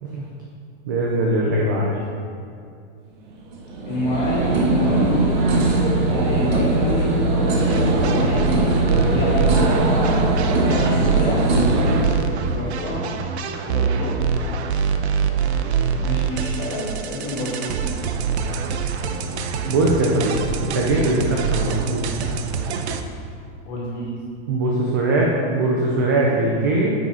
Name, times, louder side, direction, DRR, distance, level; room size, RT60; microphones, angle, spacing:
voice 1, 0.9-2.0 9.1-9.3 19.7-22.0 24.5-26.9, right 2 dB, 20° right, -3 dB, 0.3 m, -21 dB
sound 1, 3.3-12.0, right 2 dB, 40° right, 1.4 m, -20 dB
voice 2, 3.9-5.3 6.0-9.5 10.4-11.4 11.9-13.0 13.6-14.1 16.0-17.8 23.7-24.1, left 1 dB, 20° left, -5 dB, 2.2 m, -28 dB
sound 2, 7.6-23.0, right 6 dB, 70° right, 0.8 m, -25 dB
9.2 x 7.5 x 4.2 m, 2.4 s
supercardioid pair, 175°, 34 cm